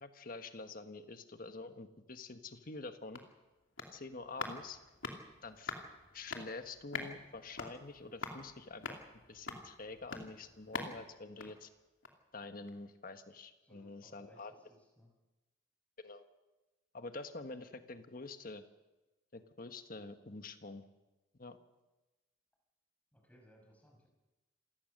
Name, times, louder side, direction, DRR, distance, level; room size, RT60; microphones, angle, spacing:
voice 1, 0.0-3.2 3.9-4.8 5.4-5.7 6.1-9.0 9.3-11.7 12.3-14.5 16.0-16.2 16.9-18.6 19.3-20.8 21.4-21.6, left 3 dB, 45° left, 8 dB, 1.4 m, -47 dB
sound 1, 2.9-12.3 12.7-12.8, left 4 dB, 85° left, 2.8 m, -46 dB
voice 2, 13.6-15.1 23.1-24.1, equal, 10° left, 0 dB, 5.8 m, -63 dB
27.5 x 17.0 x 6.6 m, 1.1 s
head